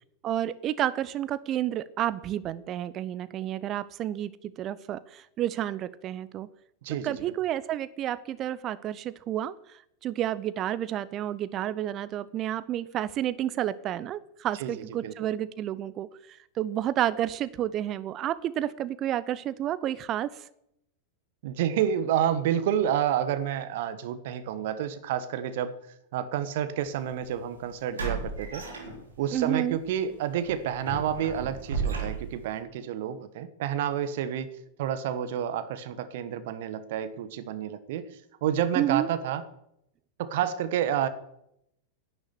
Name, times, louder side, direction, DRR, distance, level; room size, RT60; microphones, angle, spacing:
voice 1, 0.2-4.3 4.6-6.5 6.9-9.5 10.0-20.4 29.3-29.8 38.8-39.1, right 12 dB, 30° right, 16 dB, 0.8 m, -30 dB
voice 2, 6.8-7.2 14.6-14.7 15.0-15.3 21.4-25.7 26.1-28.6 29.2-34.5 34.8-38.1 38.4-39.4 40.2-41.1, right 9 dB, 55° right, 12 dB, 1.3 m, -29 dB
sound 1, 26.8-27.0 28.0-29.4 29.8-30.0 30.4-32.5, right 4 dB, 70° right, 3.6 m, -34 dB
10.5 x 8.8 x 9.4 m, 0.79 s
figure-of-eight pair, 90°, 0 cm